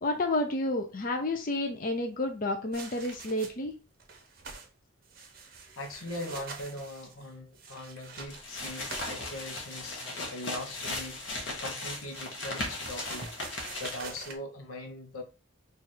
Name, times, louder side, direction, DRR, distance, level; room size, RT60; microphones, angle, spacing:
voice 1, 0.0-3.7, left 2 dB, 40° left, 0.5 m, -30 dB
sound 1, 2.7-3.7 4.0-4.7 5.0-10.2 11.5-14.4, right 4 dB, 45° right, 0.7 m, -46 dB
voice 2, 5.5-11.2 11.5-15.2, left 1 dB, 85° left, 0.8 m, -41 dB
sound 2, 8.3-14.2, left 2 dB, 60° left, 1.0 m, -37 dB
3.2 x 2.4 x 4.1 m
head